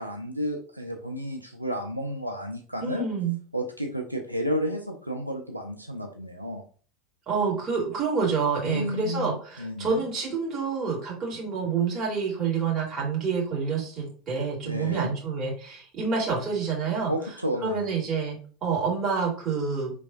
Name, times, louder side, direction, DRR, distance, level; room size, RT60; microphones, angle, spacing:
voice 1, 0.0-3.1 3.5-6.6 8.6-9.3 9.6-10.0 14.6-15.1 17.1-17.8, equal, 90° right, 3 dB, 0.4 m, -31 dB
voice 2, 2.8-3.4 7.3-17.1 17.6-19.9, right 5 dB, 30° right, -2 dB, 2.2 m, -28 dB
5.1 x 3.4 x 2.5 m, 0.41 s
figure-of-eight pair, 80°, 0 cm